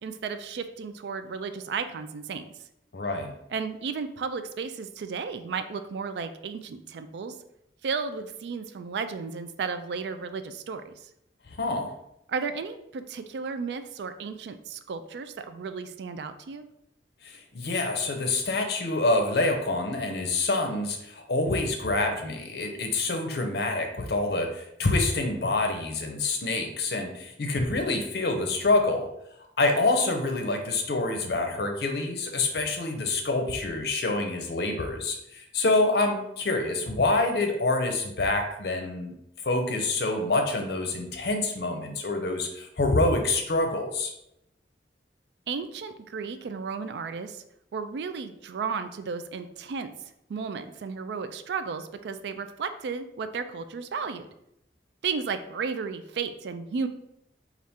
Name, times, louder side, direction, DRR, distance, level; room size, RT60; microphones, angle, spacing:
voice 1, 0.0-2.5 3.5-7.4 7.8-10.9 12.3-16.7 45.5-47.4 47.7-49.9 50.3-54.3 55.0-56.9, right 5 dB, 75° right, 10 dB, 0.3 m, -33 dB
voice 2, 2.9-3.3 11.5-11.9 17.2-29.1 29.6-39.1 39.4-44.1, left 2 dB, 65° left, 4 dB, 0.6 m, -26 dB
4.1 x 2.4 x 3.5 m, 0.81 s
head